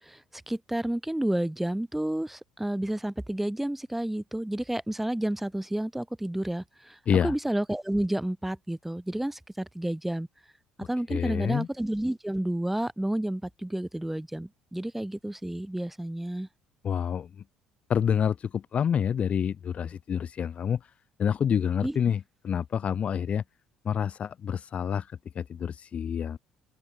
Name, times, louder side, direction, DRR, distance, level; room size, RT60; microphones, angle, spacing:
voice 1, 0.0-10.3 10.8-16.5 21.8-22.0, right 1 dB, 5° right, 0.8 m, -30 dB
voice 2, 11.1-11.7 16.8-17.3 17.9-20.8 21.2-23.4 23.8-25.1 25.4-26.4, left 8 dB, 40° left, 0.5 m, -27 dB
open air
figure-of-eight pair, 55°, 3 cm